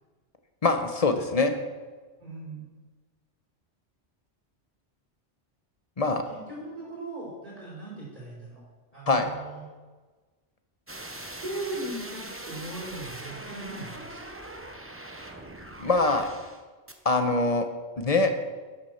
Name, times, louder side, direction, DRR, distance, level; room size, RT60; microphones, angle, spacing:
voice 1, 0.6-1.5 6.0-6.2 9.1-9.3 15.8-16.3 17.0-17.7 18.0-18.3, left 3 dB, 35° left, 7 dB, 0.9 m, -23 dB
voice 2, 2.2-2.6 6.3-8.6 8.9-9.6 11.4-14.3, right 2 dB, 35° right, -9 dB, 4.5 m, -38 dB
sound 1, 10.9-16.6 16.9-17.0, right 1 dB, 15° right, 0.8 m, -41 dB
11.0 x 7.5 x 6.4 m, 1.3 s
omnidirectional pair, 1.2 m